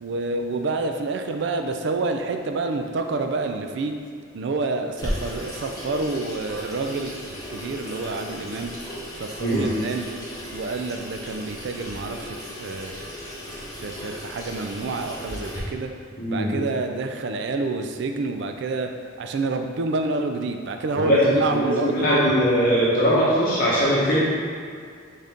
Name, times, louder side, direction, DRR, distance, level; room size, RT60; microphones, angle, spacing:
voice 1, 0.0-4.0 4.3-8.7 9.2-10.1 10.5-13.1 13.8-15.9 16.3-18.9 19.2-22.1, right 3 dB, 60° right, 5 dB, 0.3 m, -28 dB
Water tap faucet / Sink (filling or washing), 5.0-15.6, equal, 20° left, 0.8 m, -36 dB
voice 2, 16.2-16.5 20.9-21.2 21.5-24.2, equal, 45° left, -9 dB, 1.0 m, -20 dB
4.1 x 3.7 x 3.5 m, 2.2 s
head